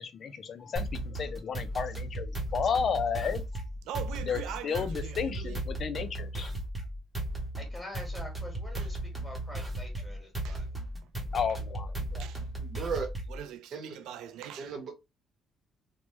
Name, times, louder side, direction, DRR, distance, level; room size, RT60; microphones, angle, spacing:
voice 1, 0.0-3.6 4.2-6.5 11.3-12.3, left 6 dB, 50° left, 0.5 m, -33 dB
sound 1, 0.8-13.4, right 1 dB, 15° right, 0.9 m, -36 dB
voice 2, 3.9-5.6 8.8-8.9 10.4-10.6 11.0-11.1 12.2-12.4 13.3-14.8, right 9 dB, 85° right, 0.4 m, -42 dB
voice 3, 7.6-9.0 9.2-10.7, left 1 dB, 10° left, 1.6 m, -45 dB
voice 4, 12.6-13.1 13.7-14.0 14.6-14.9, right 6 dB, 60° right, 1.0 m, -35 dB
3.0 x 2.2 x 3.0 m
cardioid pair, 105°, 0 cm